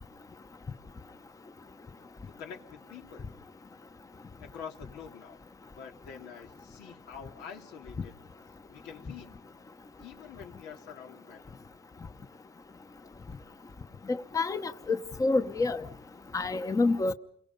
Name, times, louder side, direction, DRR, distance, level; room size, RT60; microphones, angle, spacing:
voice 1, 2.3-3.3 4.4-5.4 5.7-8.2 8.7-9.4 10.0-11.4, left 7 dB, 85° left, 2.8 m, -46 dB
voice 2, 14.1-15.8 16.3-17.1, left 3 dB, 20° left, 1.0 m, -28 dB
29.5 x 23.5 x 5.3 m
cardioid pair, 110°, 17 cm